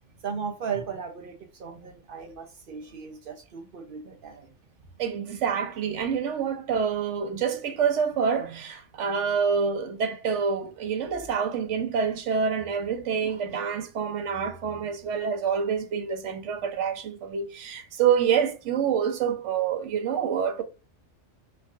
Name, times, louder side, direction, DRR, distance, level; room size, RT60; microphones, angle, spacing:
voice 1, 0.2-4.5, right 6 dB, 55° right, 0.7 m, -36 dB
voice 2, 5.0-20.6, right 6 dB, 80° right, 1.0 m, -27 dB
4.5 x 2.6 x 2.4 m
omnidirectional pair, 1.2 m